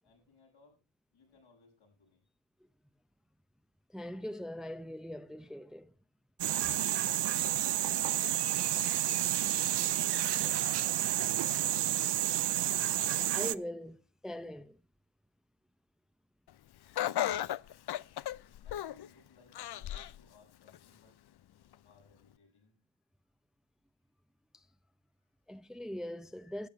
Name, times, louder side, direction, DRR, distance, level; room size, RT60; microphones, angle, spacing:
voice 1, 0.0-0.8 1.1-2.2 6.8-7.5 7.9-11.6 18.6-21.2 21.8-22.7 25.2-25.3, left 4 dB, 85° left, 6.9 m, -64 dB
voice 2, 3.9-5.9 13.3-14.8 24.5-24.7 25.5-26.7, left 1 dB, ahead, 0.7 m, -41 dB
sound 1, 6.4-13.5, right 12 dB, 55° right, 0.6 m, -30 dB
Laughter, 17.0-19.1 19.6-20.2 20.7-20.8 21.7-21.8, left 12 dB, 55° left, 0.6 m, -34 dB
13.0 x 8.4 x 4.8 m
cardioid pair, 55°, 48 cm